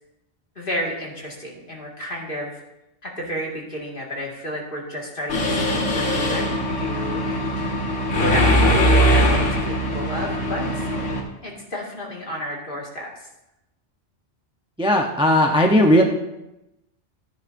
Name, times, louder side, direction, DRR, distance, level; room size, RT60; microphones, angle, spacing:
voice 1, 0.6-2.6 3.0-7.9 8.2-10.9 11.4-13.3, equal, 45° left, -2 dB, 2.3 m, -32 dB
Mechanisms, 5.3-11.2, equal, 85° left, 1.9 m, -21 dB
voice 2, 14.8-16.0, equal, 5° right, 1 dB, 0.7 m, -16 dB
14.0 x 9.6 x 2.7 m, 0.93 s
omnidirectional pair, 1.2 m